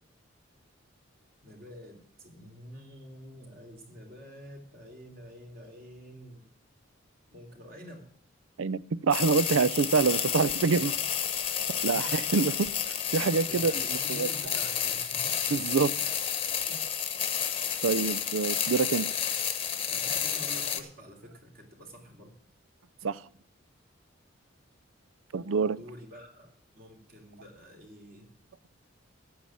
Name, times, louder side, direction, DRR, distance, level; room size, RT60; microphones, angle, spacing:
voice 1, 1.4-6.5 7.3-8.1 11.7-12.3 13.4-15.6 16.7-16.9 19.9-22.3 25.7-28.3, equal, 45° right, 3.1 m, -48 dB
voice 2, 8.6-10.9 11.8-13.7 14.1-14.3 15.5-15.9 17.8-19.1 23.0-23.2 25.3-25.8, right 5 dB, 80° right, 0.5 m, -26 dB
sound 1, 9.1-20.8, left 8 dB, 25° left, 1.0 m, -31 dB
9.4 x 8.7 x 7.3 m
head